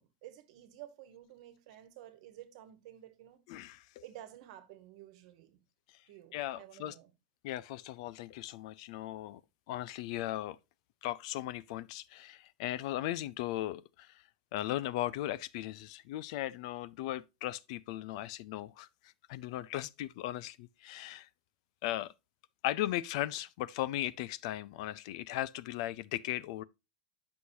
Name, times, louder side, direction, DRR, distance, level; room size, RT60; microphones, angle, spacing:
voice 1, 0.0-3.4 4.0-5.6 6.1-7.1, right 12 dB, 50° right, 1.3 m, -52 dB
voice 2, 3.5-3.9 6.3-6.9 7.4-9.4 9.7-10.6 11.0-14.2 14.5-21.3 21.8-22.1 22.6-26.6, left 14 dB, 45° left, 0.4 m, -37 dB
9.8 x 6.3 x 2.7 m
supercardioid pair, 170°, 5 cm